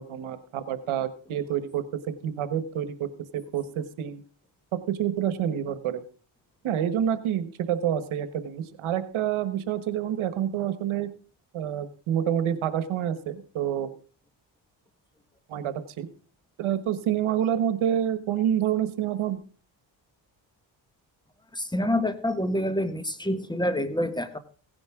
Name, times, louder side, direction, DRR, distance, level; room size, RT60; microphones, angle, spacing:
voice 1, 0.0-4.2 4.9-6.0 6.6-11.1 11.5-13.9 15.5-16.1 16.6-19.4, right 10 dB, 85° right, 12 dB, 1.4 m, -28 dB
voice 2, 21.5-24.4, left 1 dB, 10° left, 10 dB, 1.5 m, -27 dB
16.5 x 10.5 x 3.7 m, 0.36 s
cardioid pair, 90°, 48 cm